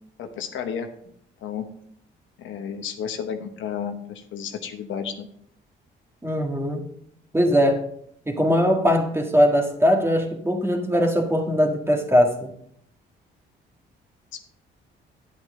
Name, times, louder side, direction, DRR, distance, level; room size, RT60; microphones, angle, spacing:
voice 1, 0.2-0.9 1.4-1.7 2.4-5.3 14.3-14.4, left 7 dB, 75° left, 6 dB, 1.1 m, -32 dB
voice 2, 6.2-6.8 7.3-7.8 8.3-12.5, equal, 10° right, 3 dB, 1.7 m, -20 dB
9.2 x 8.4 x 3.7 m, 0.67 s
cardioid pair, 90°, 20 cm